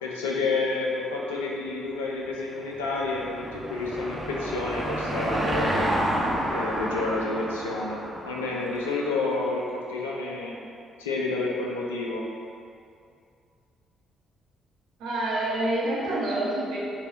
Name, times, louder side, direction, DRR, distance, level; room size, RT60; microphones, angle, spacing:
voice 1, 0.0-5.9 6.5-10.6 11.0-12.2, left 3 dB, 85° left, -3 dB, 0.4 m, -29 dB
Car passing by / Engine, 2.4-9.2, right 1 dB, 25° right, 0.7 m, -30 dB
voice 2, 15.0-16.8, right 1 dB, 70° right, -6 dB, 0.8 m, -27 dB
3.3 x 2.3 x 3.8 m, 2.4 s
hypercardioid pair, 45°, 0 cm